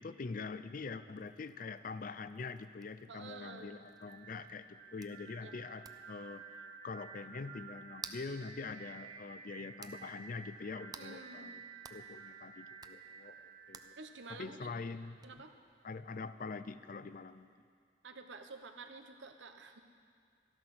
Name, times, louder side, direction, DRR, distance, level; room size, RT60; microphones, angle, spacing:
voice 1, 0.0-6.4 6.8-11.6 11.9-13.9 14.3-15.2 15.8-17.5, left 4 dB, 45° left, 13 dB, 0.5 m, -44 dB
sound 1, 1.2-17.6, right 5 dB, 20° right, 0.5 m, -58 dB
voice 2, 3.1-3.8 5.4-5.5 10.9-11.5 14.0-14.7 15.2-15.5 18.0-19.8, right 4 dB, 90° right, 6 dB, 1.1 m, -50 dB
sound 2, 3.2-15.0, right 5 dB, 40° right, 2.1 m, -53 dB
13.5 x 12.0 x 6.1 m, 2.2 s
head